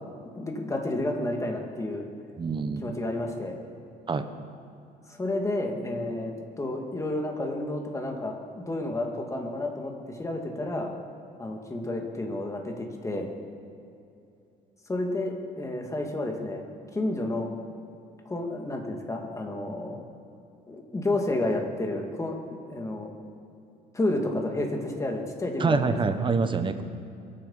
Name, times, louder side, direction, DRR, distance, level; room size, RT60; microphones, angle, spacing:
voice 1, 0.3-2.0 2.8-3.6 5.1-10.9 11.4-13.3 14.9-16.6 16.9-17.5 18.3-20.0 20.7-23.1 23.9-26.2, left 2 dB, 20° left, 2 dB, 2.2 m, -31 dB
voice 2, 2.4-2.9 4.1-4.3 25.6-26.8, right 4 dB, 30° right, 9 dB, 1.1 m, -26 dB
23.5 x 8.6 x 5.7 m, 2.7 s
cardioid pair, 110°, 17 cm